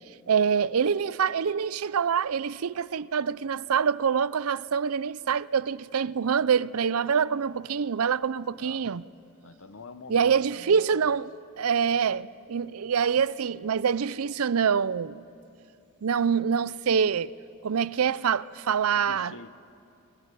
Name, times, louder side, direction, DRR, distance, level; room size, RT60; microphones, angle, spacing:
voice 1, 0.3-9.0 10.1-11.3 11.6-15.2 16.0-17.3 17.6-19.3, right 6 dB, 80° right, 0.5 m, -25 dB
voice 2, 9.4-11.2 18.9-19.5, left 4 dB, 65° left, 1.0 m, -46 dB
24.5 x 19.5 x 9.2 m
head